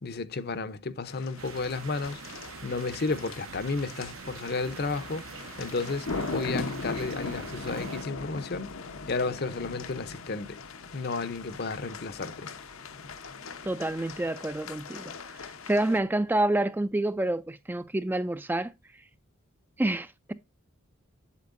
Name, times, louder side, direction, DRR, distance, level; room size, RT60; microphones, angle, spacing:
voice 1, 0.0-2.2 2.6-5.2 5.6-8.7 9.1-10.6 10.9-12.5, left 3 dB, 50° left, 0.7 m, -32 dB
sound 1, 1.1-16.0, left 3 dB, 80° left, 1.0 m, -40 dB
sound 2, 1.4-8.0, right 6 dB, 75° right, 0.7 m, -44 dB
voice 2, 13.6-18.7 19.8-20.3, right 1 dB, 10° right, 0.3 m, -28 dB
8.4 x 7.7 x 2.6 m
head